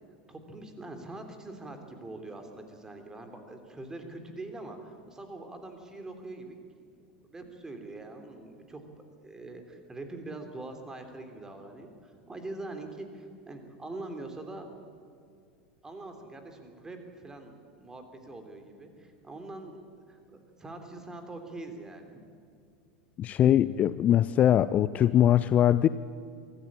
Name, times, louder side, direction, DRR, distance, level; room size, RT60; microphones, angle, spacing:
voice 1, 0.3-6.6 7.2-8.8 9.2-14.7 15.8-22.2, right 2 dB, 15° right, 6 dB, 3.2 m, -43 dB
voice 2, 23.2-25.9, left 11 dB, 30° left, 16 dB, 0.5 m, -22 dB
23.5 x 14.5 x 8.7 m, 2.3 s
figure-of-eight pair, 85°, 5 cm